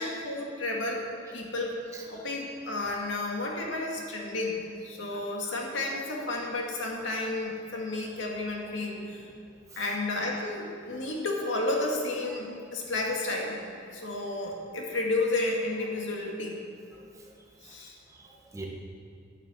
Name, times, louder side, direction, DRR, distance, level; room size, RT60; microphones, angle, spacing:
voice 1, 0.0-9.3 9.8-13.6 13.9-16.6 17.6-17.9, left 2 dB, 70° left, -1 dB, 2.1 m, -32 dB
voice 2, 1.9-2.3 4.9-5.5 9.7-9.8 18.1-18.7, right 2 dB, 15° right, -1 dB, 1.5 m, -45 dB
10.5 x 9.1 x 7.5 m, 2.4 s
head